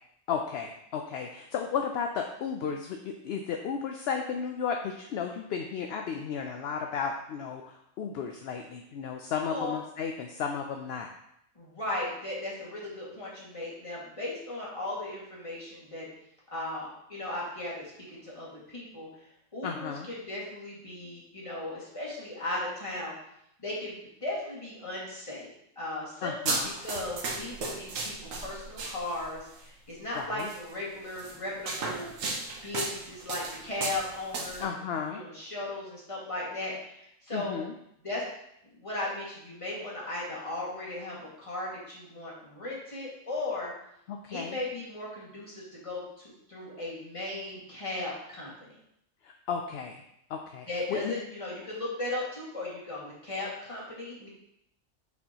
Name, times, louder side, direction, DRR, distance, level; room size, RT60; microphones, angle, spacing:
voice 1, 0.3-11.1 19.6-20.1 26.2-26.7 30.1-30.5 34.6-35.2 37.3-37.7 44.1-44.6 49.2-50.0 50.3-51.2, left 6 dB, 65° left, 3 dB, 0.7 m, -34 dB
voice 2, 11.6-16.1 16.5-19.1 19.5-23.1 23.6-25.5 25.8-26.6 26.8-32.1 32.6-34.6 35.2-37.6 38.0-38.2 38.7-43.7 44.3-46.0 46.5-48.8 50.7-54.3, left 2 dB, 25° left, -6 dB, 2.0 m, -36 dB
sound 1, 26.5-29.3 30.4-30.6 31.2-34.7, right 3 dB, 80° right, 1.2 m, -35 dB
8.1 x 4.3 x 2.9 m, 0.76 s
omnidirectional pair, 1.4 m